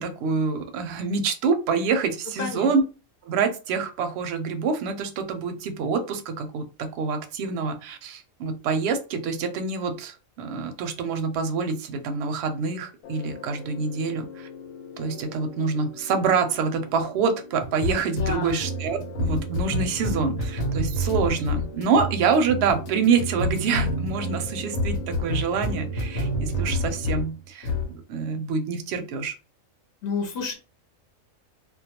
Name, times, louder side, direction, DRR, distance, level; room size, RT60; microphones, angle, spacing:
voice 1, 0.0-2.8 3.2-14.5 15.0-29.3, right 5 dB, 65° right, 6 dB, 0.7 m, -26 dB
voice 2, 2.4-2.7 18.1-18.7 30.0-30.5, left 5 dB, 60° left, 2 dB, 0.8 m, -30 dB
sound 1, 13.0-27.3 27.6-27.9, left 1 dB, 85° left, 1.0 m, -30 dB
2.2 x 2.2 x 2.8 m, 0.32 s
omnidirectional pair, 1.4 m